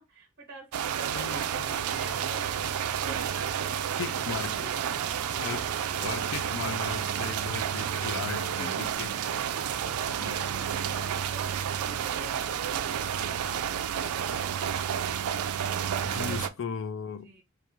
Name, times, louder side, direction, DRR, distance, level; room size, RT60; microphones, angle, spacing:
voice 1, 0.1-4.3 8.0-8.7 9.8-14.9 15.6-16.4 17.2-17.4, right 3 dB, 50° right, 1.0 m, -46 dB
sound 1, 0.7-16.5, right 9 dB, 90° right, 0.4 m, -30 dB
voice 2, 1.0-1.9 4.0-4.7 5.4-5.7 6.0-9.1 10.2-10.4 16.0-17.3, left 6 dB, 65° left, 0.4 m, -37 dB
sound 2, 1.9-13.7, right 2 dB, 30° left, 0.9 m, -53 dB
4.6 x 2.4 x 2.9 m
head